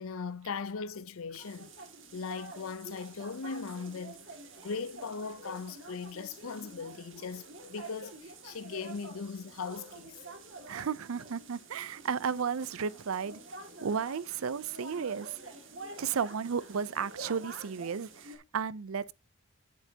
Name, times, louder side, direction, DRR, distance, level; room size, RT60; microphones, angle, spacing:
voice 1, 0.0-1.7 2.1-4.2 4.6-10.2, left 5 dB, 80° left, 0.6 m, -39 dB
sound 1, 1.4-18.4, right 3 dB, 65° right, 2.1 m, -48 dB
voice 2, 10.7-13.4 13.8-15.4 16.0-19.1, right 6 dB, 85° right, 0.5 m, -33 dB
10.5 x 9.0 x 2.8 m
head